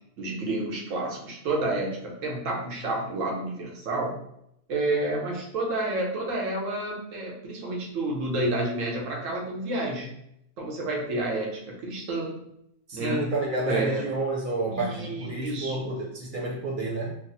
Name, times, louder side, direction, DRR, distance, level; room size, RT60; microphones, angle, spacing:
voice 1, 0.2-4.2 4.7-10.1 10.6-12.4 12.9-13.3 13.6-14.1 14.7-15.9, right 2 dB, 85° right, -1 dB, 1.2 m, -30 dB
voice 2, 12.9-17.1, right 2 dB, 45° right, -2 dB, 0.8 m, -29 dB
3.9 x 2.0 x 2.7 m, 0.75 s
omnidirectional pair, 1.3 m